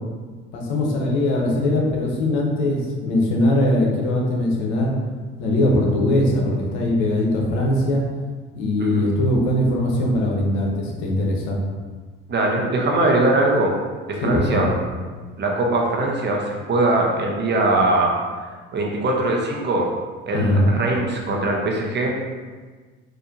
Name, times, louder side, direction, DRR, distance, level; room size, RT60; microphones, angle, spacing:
voice 1, 0.5-4.9 5.4-8.0 8.5-11.6 14.2-14.7 20.3-20.7, left 1 dB, 70° left, -1 dB, 0.8 m, -21 dB
voice 2, 12.3-13.7 14.1-14.7 15.4-18.1 18.7-19.9 20.3-22.2, right 2 dB, 35° right, 0 dB, 0.8 m, -21 dB
4.2 x 2.6 x 2.6 m, 1.4 s
hypercardioid pair, 70°, 30 cm